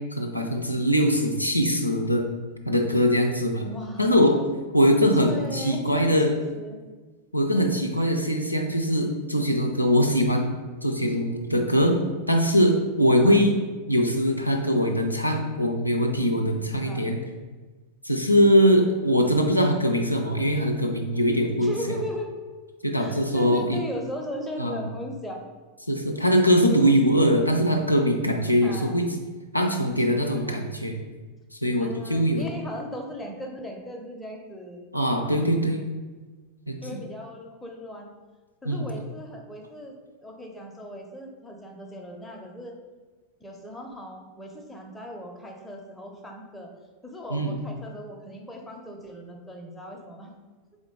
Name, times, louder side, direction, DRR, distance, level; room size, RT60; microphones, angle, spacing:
voice 1, 0.2-2.2 2.7-3.6 4.0-4.4 4.7-6.3 7.3-10.5 10.8-12.0 12.3-13.5 13.9-17.2 18.0-21.7 22.8-23.8 24.6-24.8 25.9-29.1 29.5-30.9 31.5-32.4 34.9-35.8 36.7-37.0 38.7-38.9 47.3-47.6, equal, 90° left, 2 dB, 0.4 m, -22 dB
voice 2, 3.6-6.2 6.5-6.8 13.2-13.4 16.8-17.1 21.6-22.3 23.0-25.4 28.6-29.0 30.0-30.6 31.8-34.9 36.8-38.1 38.6-40.0 40.2-42.7 43.4-46.7 47.0-50.3, equal, 5° left, 0 dB, 0.7 m, -37 dB
3.7 x 3.6 x 3.8 m, 1.3 s
figure-of-eight pair, 90°, 0 cm